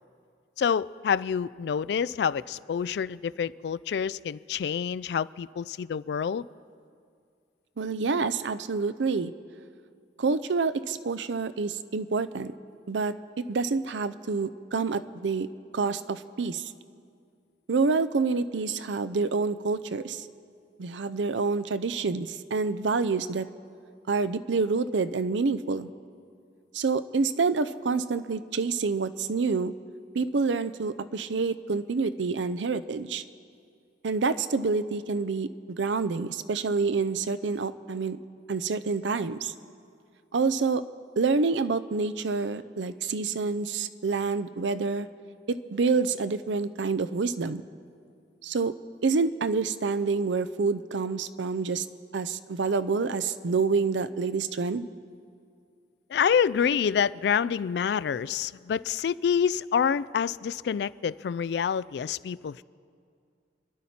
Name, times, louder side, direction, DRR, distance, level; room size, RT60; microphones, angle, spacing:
voice 1, 0.6-6.5 56.1-62.6, left 7 dB, 65° left, 0.3 m, -27 dB
voice 2, 7.8-9.3 10.2-12.5 12.9-15.5 15.7-16.7 17.7-20.3 20.8-23.5 24.1-25.9 26.7-29.7 30.1-33.2 34.0-38.2 38.5-39.5 40.3-40.8 41.2-45.1 45.5-47.6 48.4-48.7 49.0-51.9 52.1-54.9, right 4 dB, 85° right, 0.5 m, -27 dB
27.5 x 11.0 x 4.3 m
head